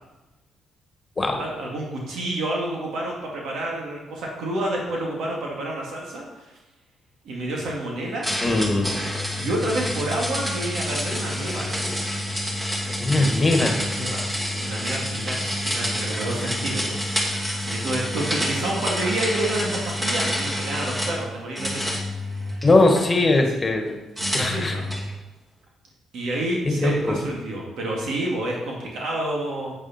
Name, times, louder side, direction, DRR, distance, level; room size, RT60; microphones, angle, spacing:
voice 1, 1.3-6.5 7.2-8.6 9.3-12.0 13.8-17.0 17.6-21.9 22.4-22.6 24.3-24.9 26.1-29.7, right 1 dB, 75° right, -2 dB, 2.5 m, -29 dB
sound 1, 8.2-21.2 21.6-23.1 24.2-25.1, left 1 dB, 15° right, 2.3 m, -28 dB
voice 2, 8.4-8.9 13.0-13.8 22.6-24.0 24.3-24.8 26.6-27.2, left 2 dB, 25° left, 3 dB, 1.7 m, -20 dB
8.7 x 8.5 x 4.4 m, 1.1 s
cardioid pair, 90°, 0 cm